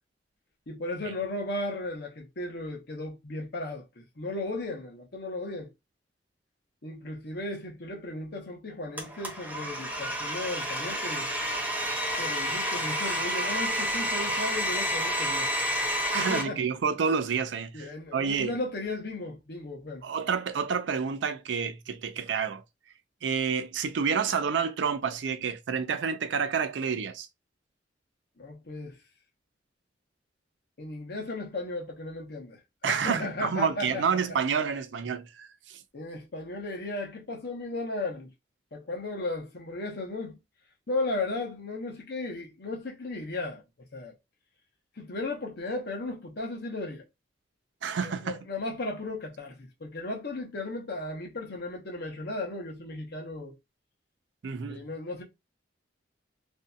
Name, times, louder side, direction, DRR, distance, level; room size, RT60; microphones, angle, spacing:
voice 1, 0.7-5.7 6.8-11.3 12.2-15.5 16.1-16.6 17.7-20.0 28.4-29.0 30.8-34.2 35.9-38.3 38.7-40.4 40.9-43.6 43.9-44.1 45.0-47.0 48.0-53.5 54.7-55.2, left 2 dB, 60° left, 0.8 m, -35 dB
Domestic sounds home sounds, 9.0-16.4, equal, 10° right, 0.6 m, -30 dB
voice 2, 16.1-18.5 20.0-22.6 23.2-27.3 32.8-35.5 47.8-48.4 54.4-54.8, right 6 dB, 75° right, 0.4 m, -29 dB
2.6 x 2.6 x 2.2 m
head